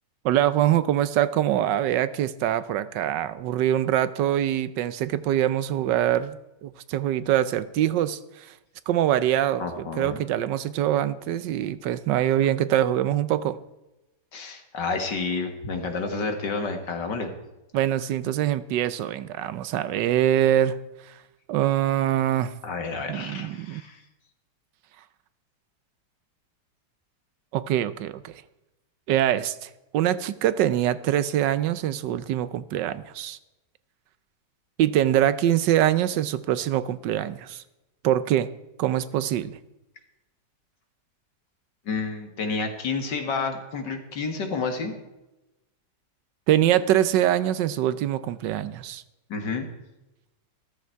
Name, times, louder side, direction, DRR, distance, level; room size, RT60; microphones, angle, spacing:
voice 1, 0.2-8.5 8.9-13.6 17.7-20.8 21.5-22.5 23.1-23.8 27.5-28.3 29.1-33.4 34.8-37.6 38.0-38.5 38.8-39.6 46.5-49.0, right 11 dB, 80° right, 15 dB, 1.4 m, -24 dB
voice 2, 9.6-10.2 14.3-17.3 22.6-24.0 41.9-45.0 49.3-49.7, left 4 dB, 75° left, 5 dB, 2.4 m, -30 dB
14.0 x 13.5 x 4.6 m, 0.98 s
omnidirectional pair, 1.9 m